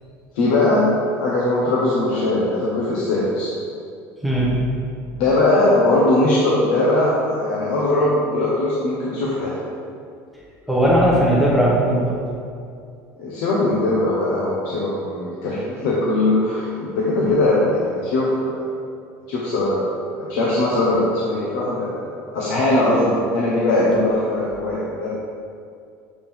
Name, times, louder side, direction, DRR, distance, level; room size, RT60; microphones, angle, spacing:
voice 1, 0.3-0.9 1.2-3.5 5.1-9.5 13.2-18.6 19.3-19.8 20.1-25.1, left 2 dB, 80° left, -6 dB, 1.2 m, -20 dB
voice 2, 4.2-4.6 10.7-12.2 17.2-17.3, equal, ahead, -7 dB, 0.9 m, -18 dB
7.6 x 4.6 x 3.6 m, 2.3 s
cardioid pair, 175°, 7 cm